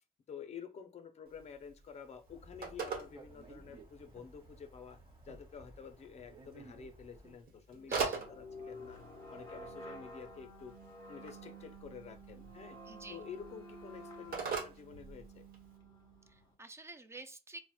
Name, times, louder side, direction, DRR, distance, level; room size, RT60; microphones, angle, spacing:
voice 1, 0.3-5.0 5.2-9.0 9.3-10.7 11.1-12.8 13.1-15.4, left 6 dB, 40° left, 0.5 m, -50 dB
Telephone, 1.3-15.8, right 5 dB, 65° right, 1.0 m, -45 dB
sound 1, 2.3-7.4, right 2 dB, 30° right, 1.6 m, -57 dB
sound 2, 7.7-16.5, equal, 25° left, 1.2 m, -51 dB
voice 2, 7.9-8.2 12.9-13.2 16.3-17.7, right 2 dB, 15° right, 0.4 m, -50 dB
4.0 x 2.1 x 2.3 m
cardioid pair, 110°, 17 cm